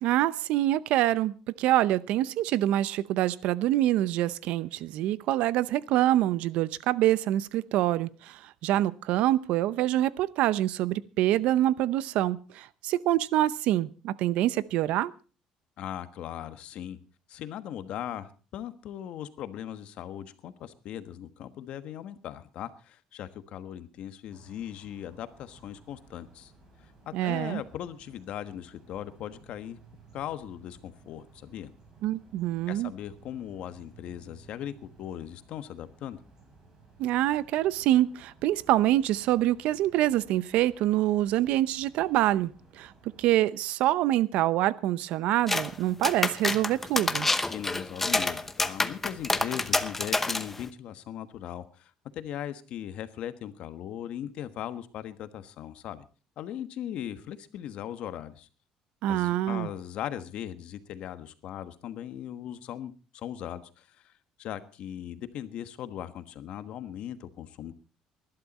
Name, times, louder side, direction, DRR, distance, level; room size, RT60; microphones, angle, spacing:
voice 1, 0.0-15.1 27.1-27.6 32.0-32.9 37.0-42.9 43.2-47.3 59.0-59.7, right 14 dB, 75° right, 0.7 m, -26 dB
voice 2, 15.8-17.0 17.3-26.5 26.8-29.8 30.1-31.7 32.7-36.2 47.5-56.0 56.4-58.5 59.1-64.1 64.4-67.7, left 10 dB, 60° left, 1.3 m, -39 dB
sound 1, 24.3-43.3, right 4 dB, 30° right, 7.3 m, -57 dB
sound 2, 45.5-45.7 46.0-50.6, left 2 dB, 10° left, 0.9 m, -28 dB
19.5 x 12.0 x 4.2 m
cardioid pair, 130°, 2 cm